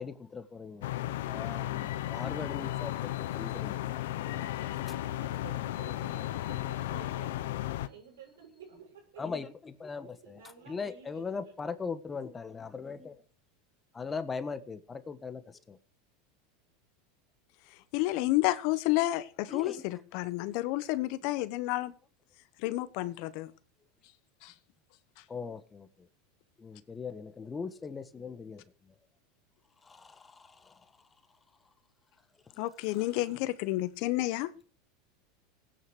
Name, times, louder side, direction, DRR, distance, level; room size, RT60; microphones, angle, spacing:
voice 1, 0.0-4.0 9.2-13.2 13.9-15.8 19.5-19.8 25.3-26.1 26.6-28.9 29.8-30.9, left 5 dB, 20° left, 1.3 m, -40 dB
sound 1, 0.8-7.9, left 14 dB, 80° left, 1.0 m, -34 dB
voice 2, 1.6-2.0 4.1-7.5 7.8-9.4 10.2-11.7, right 7 dB, 90° right, 6.5 m, -52 dB
voice 3, 17.9-21.9 22.6-23.5 24.4-24.5 32.6-34.5, left 17 dB, 60° left, 1.2 m, -30 dB
17.0 x 9.7 x 6.2 m
supercardioid pair, 115°, 0 cm